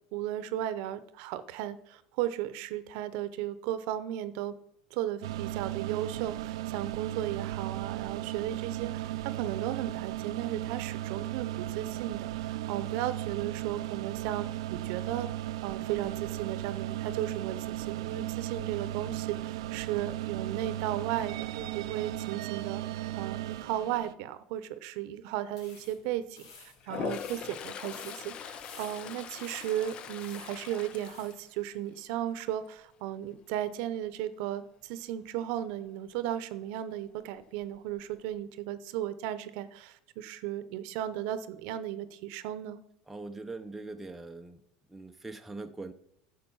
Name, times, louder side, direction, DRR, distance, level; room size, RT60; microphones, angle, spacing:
voice 1, 0.1-4.5 4.9-15.3 15.6-22.8 23.2-42.8, right 12 dB, 65° right, 14 dB, 0.8 m, -35 dB
sound 1, 5.2-24.1, right 14 dB, 90° right, 0.4 m, -36 dB
sound 2, 25.5-31.4, left 4 dB, 85° left, 2.3 m, -53 dB
Toilet flush, 26.8-32.0 32.4-32.8 37.2-37.3 37.6-38.3, left 8 dB, 35° left, 0.5 m, -41 dB
voice 2, 43.1-44.6 44.9-45.9, right 3 dB, 5° right, 5 dB, 0.6 m, -42 dB
10.0 x 6.5 x 5.6 m, 0.79 s
supercardioid pair, 135°, 3 cm